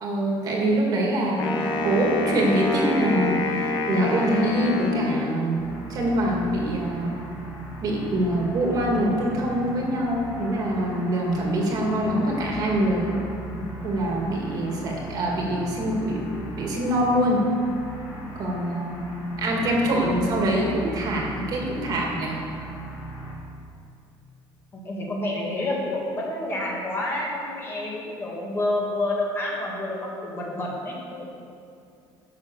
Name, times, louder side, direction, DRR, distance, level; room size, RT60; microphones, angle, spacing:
voice 1, 0.0-1.5 1.8-5.6 5.9-7.1 7.8-13.2 13.8-17.4 18.4-19.1 19.4-22.4, right 1 dB, 45° right, -1 dB, 1.9 m, -24 dB
Wind instrument woodwind instrument, 1.4-5.6, left 2 dB, 50° left, 1.3 m, -27 dB
sound 1, 5.6-23.3, right 1 dB, 80° left, 2.7 m, -38 dB
voice 2, 24.8-31.3, left 1 dB, 25° left, -3 dB, 1.7 m, -29 dB
11.0 x 6.0 x 6.9 m, 2.4 s
cardioid pair, 175°, 9 cm